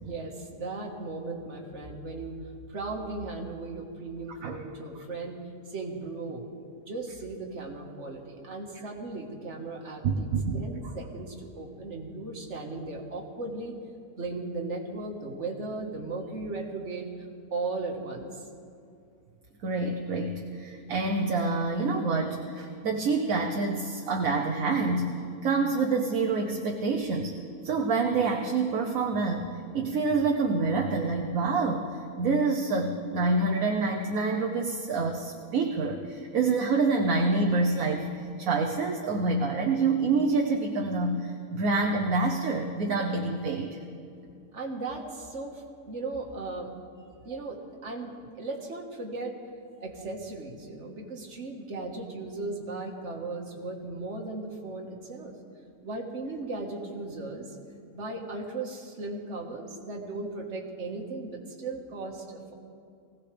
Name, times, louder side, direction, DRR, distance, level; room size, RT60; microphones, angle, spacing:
voice 1, 0.0-2.4 2.7-5.4 5.7-6.5 6.8-10.3 10.5-13.8 14.2-17.1 17.5-18.5 44.5-46.7 47.2-49.4 49.8-55.3 55.8-57.6 57.9-62.5, right 3 dB, 50° right, 1 dB, 1.9 m, -37 dB
voice 2, 10.0-10.6 19.6-25.2 25.4-27.3 27.6-29.5 29.7-43.8, right 3 dB, 65° right, 2 dB, 1.3 m, -27 dB
20.5 x 17.0 x 3.4 m, 2.4 s
omnidirectional pair, 1.6 m